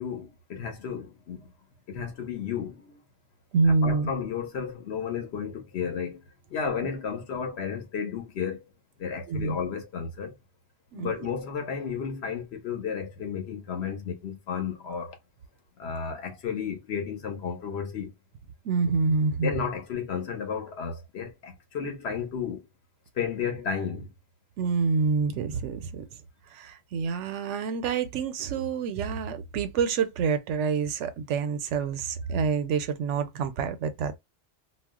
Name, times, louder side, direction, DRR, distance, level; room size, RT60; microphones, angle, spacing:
voice 1, 0.0-1.5 1.9-3.0 3.8-6.2 6.5-8.6 9.0-10.3 10.9-15.2 15.8-18.1 19.4-22.7 23.1-24.1, left 6 dB, 65° left, 1.0 m, -33 dB
voice 2, 3.5-4.1 9.3-9.6 10.9-11.1 18.6-19.5 21.8-21.9 24.6-26.0 26.5-34.2, right 5 dB, 85° right, 0.9 m, -27 dB
2.4 x 2.0 x 3.5 m
omnidirectional pair, 1.2 m